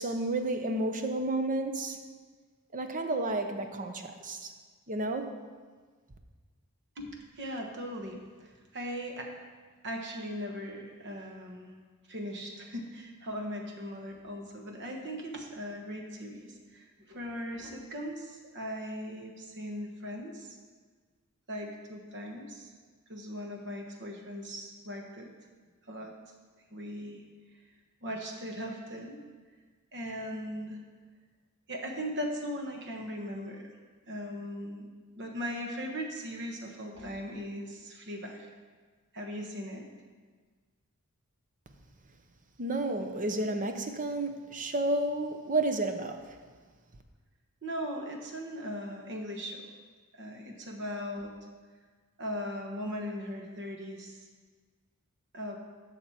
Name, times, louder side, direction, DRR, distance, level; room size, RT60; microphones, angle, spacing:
voice 1, 0.0-2.0 2.7-4.5 4.9-5.3 42.6-46.4, right 2 dB, 35° right, 6 dB, 0.8 m, -31 dB
voice 2, 7.3-9.3 9.8-11.7 12.1-20.6 21.5-22.7 23.1-25.3 25.9-26.1 26.7-27.2 28.0-29.2 29.9-30.8 31.7-33.7 34.1-38.5 39.1-39.9 47.6-49.6 50.1-51.3 52.2-54.2 55.3-55.6, equal, 55° right, 2 dB, 1.3 m, -39 dB
12.0 x 6.5 x 4.3 m, 1.5 s
head